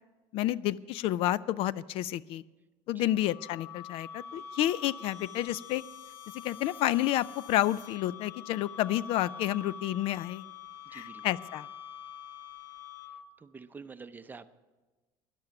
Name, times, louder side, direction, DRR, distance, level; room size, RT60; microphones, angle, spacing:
voice 1, 0.3-2.4 2.9-5.8 6.3-10.4 10.9-11.7, left 13 dB, 60° left, 20 dB, 0.4 m, -30 dB
sound 1, 3.0-13.4, left 7 dB, 90° left, 1.0 m, -46 dB
voice 2, 10.9-11.2 13.4-14.5, right 5 dB, 15° right, 11 dB, 0.6 m, -47 dB
13.5 x 10.5 x 5.9 m, 1.2 s
supercardioid pair, 115°, 11 cm